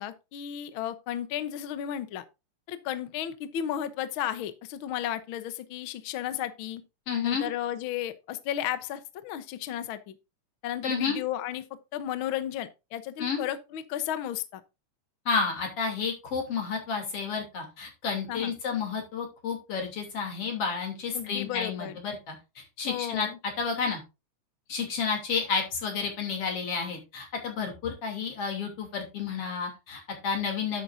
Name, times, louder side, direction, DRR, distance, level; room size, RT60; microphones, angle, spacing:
voice 1, 0.0-2.2 2.7-6.8 7.2-10.1 10.6-11.6 11.9-14.6 18.3-18.5 21.1-22.0 22.8-23.4, left 11 dB, 80° left, 1.1 m, -33 dB
voice 2, 7.1-7.5 10.8-11.2 13.2-13.4 15.3-23.3 23.6-24.0 24.7-30.8, left 5 dB, 50° left, 3.7 m, -31 dB
10.5 x 8.5 x 2.6 m
omnidirectional pair, 3.6 m